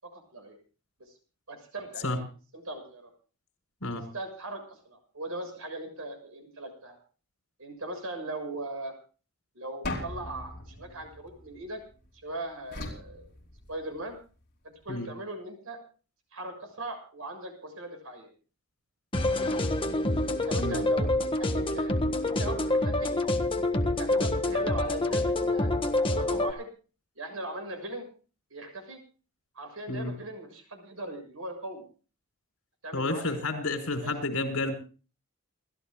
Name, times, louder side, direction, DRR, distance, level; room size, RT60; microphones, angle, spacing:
voice 1, 0.0-0.6 1.5-2.2 2.5-3.1 4.0-7.0 7.6-8.9 9.6-11.8 12.2-13.3 13.7-14.2 14.8-15.8 16.3-18.3 19.4-19.7 20.3-21.1 21.4-22.0 22.2-23.1 23.8-25.7 26.1-26.7 27.2-28.1 28.5-29.0 29.6-31.8 32.8-33.4 34.0-34.2, right 1 dB, 70° right, 6 dB, 6.9 m, -39 dB
sound 1, 9.8-12.0 12.7-14.1, left 2 dB, 45° left, 4.9 m, -39 dB
sound 2, 19.1-26.5, left 1 dB, 25° left, 1.5 m, -27 dB
voice 2, 32.9-34.7, left 2 dB, 70° left, 6 dB, 4.8 m, -30 dB
29.5 x 14.0 x 2.4 m, 0.37 s
head